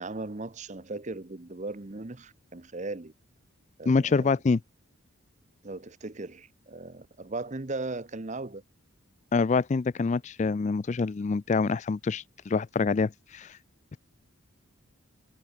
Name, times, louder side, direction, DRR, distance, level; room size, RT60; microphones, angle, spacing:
voice 1, 0.0-3.1 3.8-4.4 5.6-8.6, right 2 dB, 35° right, 0.8 m, -37 dB
voice 2, 3.9-4.6 9.3-13.6, left 4 dB, 35° left, 0.3 m, -26 dB
head